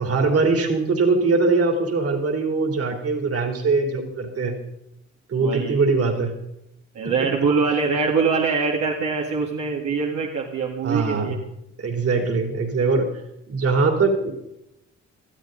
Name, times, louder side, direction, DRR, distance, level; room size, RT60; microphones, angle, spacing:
voice 1, 0.0-4.6 5.3-6.3 10.8-11.4 11.8-13.1 13.5-14.3, right 4 dB, 50° right, 4 dB, 3.2 m, -21 dB
voice 2, 5.4-5.8 6.9-11.4, right 5 dB, 75° right, -2 dB, 2.2 m, -23 dB
19.5 x 13.5 x 3.9 m, 0.82 s
cardioid pair, 90°, 30 cm